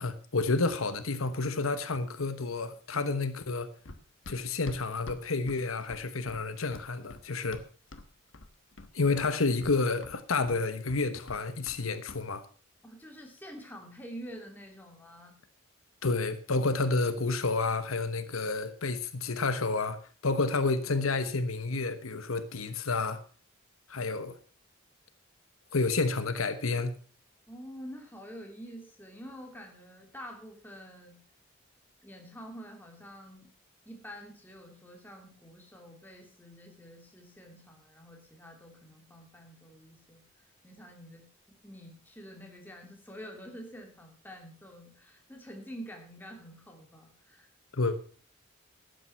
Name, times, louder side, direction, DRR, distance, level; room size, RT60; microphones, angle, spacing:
voice 1, 0.0-3.7 4.3-7.6 8.9-12.4 16.0-23.2 23.9-24.3 25.7-27.0 47.7-48.0, left 3 dB, 85° left, 1.2 m, -30 dB
Run, 3.9-8.1 8.3-8.9 9.2-11.8 12.1-12.3, left 2 dB, 65° left, 1.3 m, -46 dB
voice 2, 12.8-15.3 27.5-31.2 32.0-33.5 33.8-40.2 40.6-47.5, equal, 10° left, 2.9 m, -47 dB
12.5 x 9.2 x 5.8 m
head